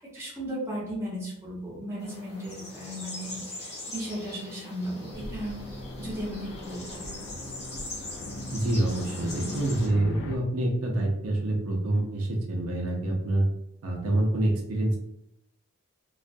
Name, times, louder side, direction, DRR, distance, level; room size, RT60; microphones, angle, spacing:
voice 1, 0.0-5.6 6.0-7.1, equal, 10° right, -7 dB, 0.8 m, -36 dB
sound 1, 2.0-9.9, left 2 dB, 30° left, 0.8 m, -42 dB
sound 2, 5.1-10.4, left 1 dB, 65° left, 0.4 m, -39 dB
voice 2, 8.5-13.5 13.8-15.0, right 1 dB, 75° right, -1 dB, 0.5 m, -26 dB
2.4 x 2.2 x 2.6 m, 0.79 s
head